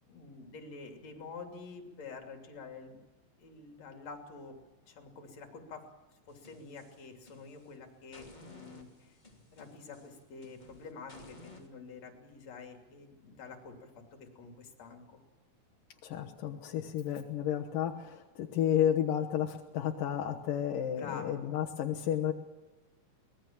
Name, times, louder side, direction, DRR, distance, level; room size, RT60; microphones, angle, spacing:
voice 1, 0.1-3.0 3.4-4.6 4.9-5.8 6.3-9.2 9.5-15.2 20.9-21.4, left 4 dB, 55° left, 4 dB, 3.9 m, -48 dB
sound 1, 6.3-7.7 8.1-11.7, left 2 dB, 15° left, 2.6 m, -55 dB
voice 2, 16.0-22.3, left 10 dB, 85° left, 2 dB, 2.8 m, -32 dB
24.0 x 19.5 x 7.3 m, 1.1 s
omnidirectional pair, 3.8 m